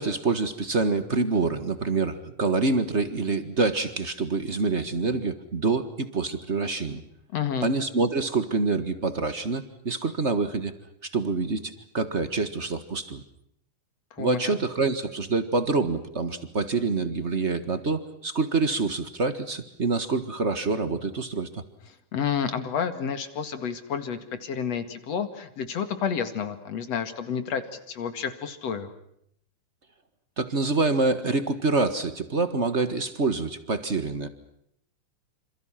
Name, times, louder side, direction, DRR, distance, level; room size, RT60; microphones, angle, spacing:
voice 1, 0.0-7.0 7.6-10.7 11.0-13.2 14.2-21.6 30.4-34.3, right 3 dB, 35° right, 11 dB, 1.2 m, -26 dB
voice 2, 7.3-7.7 14.1-14.6 22.1-28.9, left 7 dB, 55° left, 10 dB, 3.0 m, -30 dB
28.0 x 27.0 x 5.9 m, 0.72 s
omnidirectional pair, 3.7 m